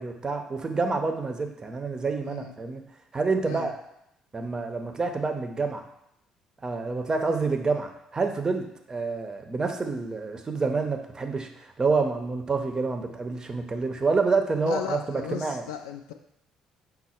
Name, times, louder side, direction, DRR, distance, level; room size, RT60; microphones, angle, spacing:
voice 1, 0.0-2.8 3.1-3.8 4.3-5.8 6.6-15.6, right 4 dB, 30° right, 5 dB, 0.6 m, -28 dB
voice 2, 14.6-16.1, left 9 dB, 80° left, 6 dB, 0.3 m, -36 dB
5.3 x 2.1 x 4.3 m, 0.79 s
hypercardioid pair, 50°, 2 cm